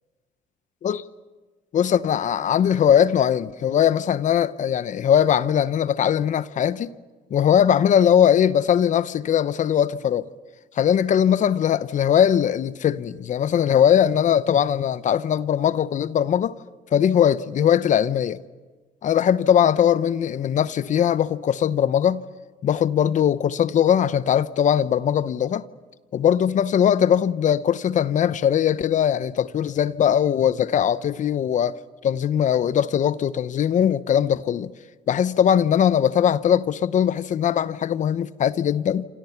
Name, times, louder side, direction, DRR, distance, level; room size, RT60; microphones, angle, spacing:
voice 1, 1.7-6.9 7.3-10.2 10.8-16.5 16.9-18.4 19.0-22.2 22.6-25.6 26.1-31.8 32.0-34.7 35.1-39.0, left 9 dB, 45° left, 0.8 m, -20 dB
27.5 x 27.0 x 5.9 m
cardioid pair, 110°, 17 cm